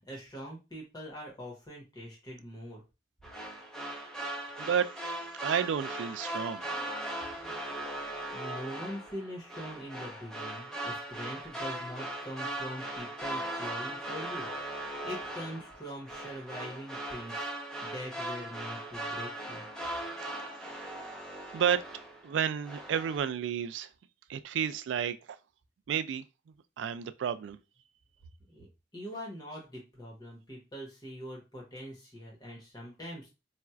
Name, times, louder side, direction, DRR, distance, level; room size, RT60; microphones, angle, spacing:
voice 1, 0.0-2.8 7.4-7.6 8.3-14.5 14.8-17.4 17.8-19.6 28.5-33.3, equal, 20° left, 1.0 m, -43 dB
sound 1, 3.2-22.3 22.6-23.2, right 1 dB, 5° left, 0.7 m, -39 dB
voice 2, 4.6-4.9 5.4-6.6 20.6-20.9 21.5-21.8 22.2-23.9 24.3-25.2 25.9-26.2 26.8-27.6, right 8 dB, 85° right, 0.3 m, -31 dB
4.2 x 2.3 x 2.3 m
head